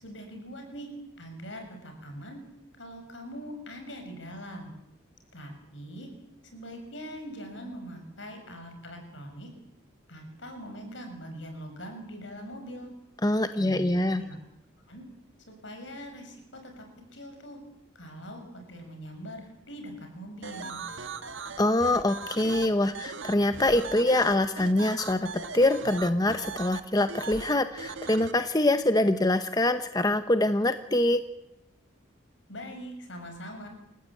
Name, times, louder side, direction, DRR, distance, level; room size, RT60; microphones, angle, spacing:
voice 1, 0.0-0.9 1.2-2.4 2.8-4.7 5.3-6.1 6.5-9.5 10.1-12.9 13.5-14.4 14.9-15.0 15.5-16.8 17.1-17.6 17.9-20.8 32.5-33.7, equal, 70° left, 4 dB, 6.3 m, -42 dB
voice 2, 13.2-14.2 21.6-25.3 25.5-31.2, left 1 dB, 20° left, 9 dB, 0.8 m, -24 dB
sound 1, 20.4-28.3, right 4 dB, 75° right, 1.5 m, -39 dB
28.5 x 15.0 x 8.5 m, 0.88 s
head